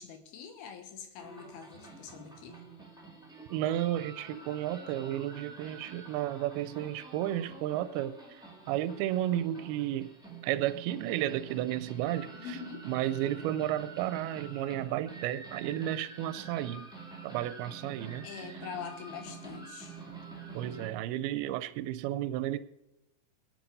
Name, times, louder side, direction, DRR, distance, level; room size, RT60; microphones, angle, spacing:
voice 1, 0.0-2.6 12.3-12.9 18.2-20.0, left 7 dB, 75° left, 3.2 m, -44 dB
sound 1, 1.2-20.9, right 4 dB, ahead, 1.1 m, -47 dB
voice 2, 3.5-8.2 8.7-10.1 10.4-12.6 12.9-16.9 17.2-18.3 20.5-22.6, right 13 dB, 85° right, 2.5 m, -32 dB
20.5 x 9.0 x 5.4 m
omnidirectional pair, 4.5 m